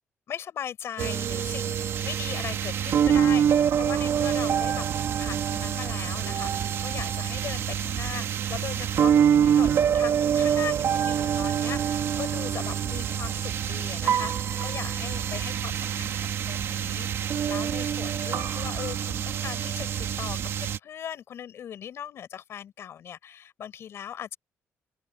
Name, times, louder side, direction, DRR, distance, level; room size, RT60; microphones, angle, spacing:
voice 1, 0.3-4.9 5.2-16.2 16.5-24.4, left 9 dB, 60° left, 5.6 m, -39 dB
sound 1, 1.0-20.8, right 8 dB, 60° right, 2.5 m, -26 dB
open air
cardioid pair, 120°, 5 cm